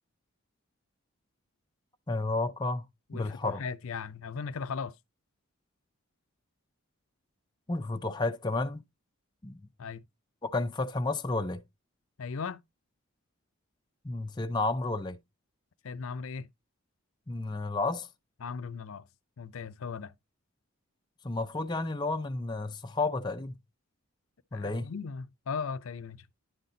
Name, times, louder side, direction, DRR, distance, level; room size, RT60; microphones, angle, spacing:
voice 1, 2.1-2.8 3.1-3.6 7.7-8.8 9.4-9.6 10.4-11.6 14.0-15.2 17.3-18.1 21.2-23.6 24.5-24.9, left 2 dB, 20° left, 0.4 m, -31 dB
voice 2, 3.1-4.9 9.8-10.0 12.2-12.6 15.8-16.5 18.4-19.1 19.4-20.1 24.5-26.3, left 5 dB, 70° left, 0.5 m, -37 dB
10.5 x 4.1 x 3.8 m
head